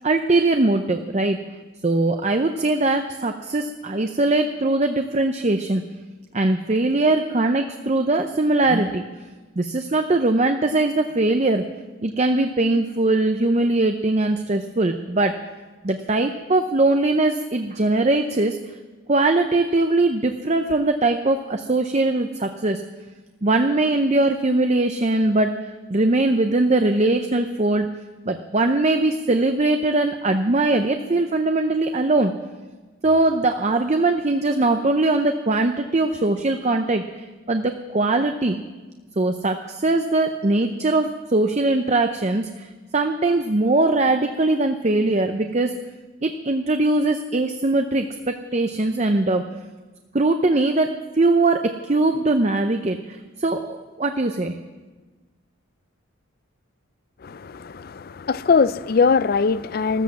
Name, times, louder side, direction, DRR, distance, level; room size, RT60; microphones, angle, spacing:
voice 1, 0.0-1.4 1.8-5.8 6.3-9.0 9.6-11.7 12.0-15.4 15.8-18.6 19.1-22.8 23.4-25.5 25.9-27.9 28.3-32.3 33.0-37.0 37.5-38.6 39.2-45.8 46.2-49.4 50.1-54.6, right 2 dB, 30° right, 0.6 m, -21 dB
voice 2, 57.2-60.0, left 5 dB, 45° left, 0.4 m, -21 dB
13.5 x 13.5 x 7.3 m
head